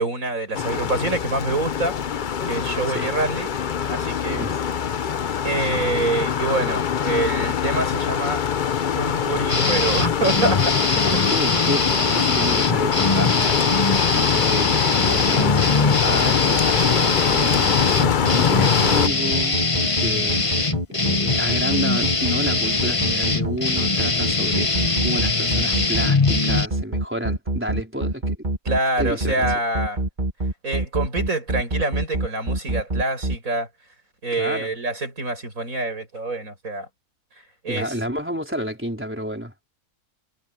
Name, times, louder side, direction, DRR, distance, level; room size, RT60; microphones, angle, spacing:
voice 1, 0.0-2.0 2.4-3.5 3.9-4.4 5.4-8.5 9.0-11.2 28.7-30.0 30.6-33.7 34.2-36.9 37.6-38.0, right 2 dB, 70° right, 6.9 m, -26 dB
sound 1, 0.5-19.1, left 8 dB, 45° left, 0.7 m, -23 dB
voice 2, 4.3-4.6 11.0-15.6 16.0-17.8 18.3-19.7 20.0-20.5 20.9-28.5 29.0-29.5 34.4-34.7 37.7-39.5, equal, 10° right, 4.5 m, -30 dB
sound 2, 9.5-26.7, left 3 dB, 25° left, 1.4 m, -22 dB
sound 3, 17.8-33.3, right 1 dB, 30° right, 2.2 m, -25 dB
omnidirectional pair, 1.5 m